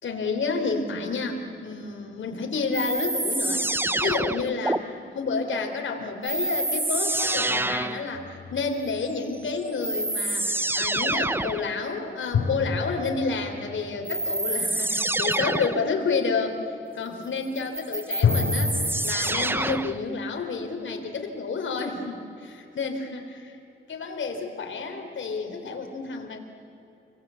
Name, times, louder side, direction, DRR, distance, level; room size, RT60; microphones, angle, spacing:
voice 1, 0.0-3.7 4.0-16.6 16.9-18.7 19.0-23.6 23.9-26.4, left 4 dB, 65° left, 4 dB, 3.7 m, -30 dB
sound 1, 2.7-4.8 6.2-8.1 9.3-9.4 9.8-11.7 14.1-15.9 17.6-20.0, right 2 dB, 10° right, 0.6 m, -27 dB
sound 2, 8.1-9.5 12.3-14.9 18.2-19.2, left 5 dB, 85° left, 2.6 m, -29 dB
29.0 x 23.0 x 8.4 m, 2.9 s
wide cardioid pair, 140°, 21 cm